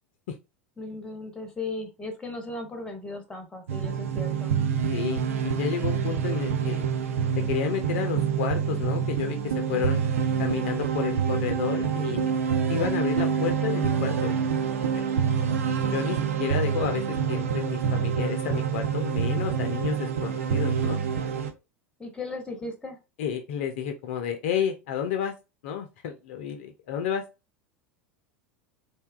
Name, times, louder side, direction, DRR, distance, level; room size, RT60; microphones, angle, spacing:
voice 1, 0.8-4.5 22.0-23.0, left 2 dB, 10° left, 6 dB, 0.7 m, -36 dB
sound 1, 3.7-21.5, right 7 dB, 65° right, 0.4 m, -27 dB
voice 2, 4.9-6.9 7.5-10.0 10.4-14.4 14.8-15.0 15.9-21.0 23.2-25.3 25.6-27.2, left 8 dB, 55° left, 5 dB, 0.4 m, -31 dB
2.7 x 2.2 x 2.2 m, 0.27 s
figure-of-eight pair, 80°, 8 cm